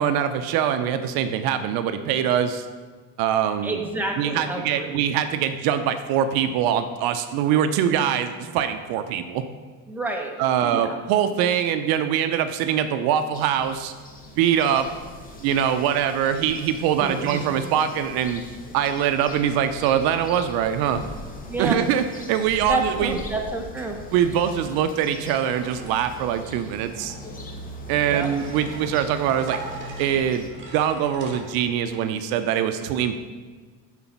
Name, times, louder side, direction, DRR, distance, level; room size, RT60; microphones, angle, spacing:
voice 1, 0.0-2.7 3.2-3.8 4.2-9.4 10.4-13.9 14.4-14.9 15.4-18.4 18.7-21.0 21.6-23.2 24.1-27.1 27.9-29.6 30.0-30.4 30.7-33.2, right 9 dB, 70° right, 9 dB, 0.6 m, -23 dB
voice 2, 3.6-5.0 9.9-10.3 10.6-11.0 17.0-17.5 21.5-21.8 22.7-24.0 28.1-28.3, right 2 dB, 5° right, 1 dB, 1.0 m, -29 dB
sound 1, 13.3-30.5, left 1 dB, 20° left, 1.0 m, -40 dB
sound 2, 25.5-32.0, right 3 dB, 30° right, 2.3 m, -42 dB
8.3 x 4.0 x 5.9 m, 1.4 s
supercardioid pair, 110°, 39 cm